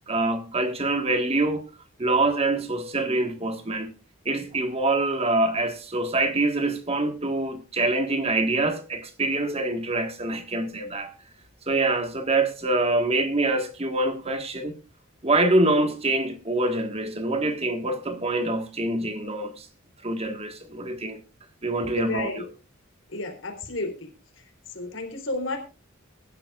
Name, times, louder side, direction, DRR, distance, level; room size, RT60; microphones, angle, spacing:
voice 1, 0.1-1.7 2.0-3.9 4.2-11.1 11.7-14.7 15.2-19.7 20.0-21.2 21.6-22.5, right 2 dB, 30° right, 1.5 m, -25 dB
voice 2, 22.0-22.4 23.1-24.1 24.7-25.6, left 2 dB, 70° left, 3.7 m, -31 dB
22.5 x 11.5 x 2.4 m
head